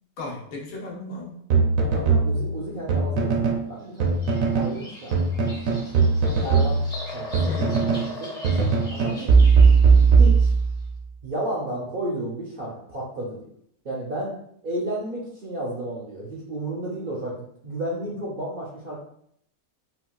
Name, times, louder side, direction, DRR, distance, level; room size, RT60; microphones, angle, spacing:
voice 1, 0.2-1.5 7.5-7.9, left 2 dB, 75° left, -1 dB, 1.2 m, -35 dB
sound 1, 1.5-3.7 4.0-4.8 5.1-8.1 8.4-10.9, right 4 dB, 70° right, 0.9 m, -19 dB
voice 2, 1.9-4.3 4.5-5.8 6.4-6.8 7.1-8.3 8.9-9.5 10.2-10.5 11.2-13.5 13.8-14.4 14.6-19.0, right 1 dB, 55° right, -5 dB, 0.6 m, -32 dB
Bird vocalization bird call bird song, 4.0-10.6, left 1 dB, 5° left, 0.6 m, -40 dB
3.9 x 2.3 x 2.2 m, 0.69 s
omnidirectional pair, 1.5 m